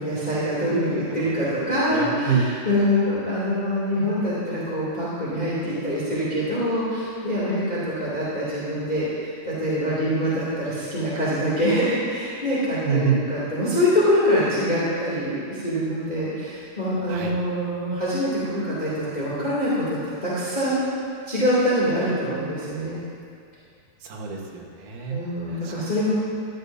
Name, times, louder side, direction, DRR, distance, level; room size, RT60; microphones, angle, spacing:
voice 1, 0.0-2.4 2.6-20.8 21.3-23.0 25.1-26.1, equal, 15° left, -10 dB, 1.5 m, -24 dB
voice 2, 1.7-2.4 12.8-13.2 17.1-17.3 24.0-25.2 25.5-25.7, right 6 dB, 60° right, -2 dB, 2.3 m, -26 dB
14.5 x 12.5 x 2.7 m, 2.3 s
omnidirectional pair, 4.9 m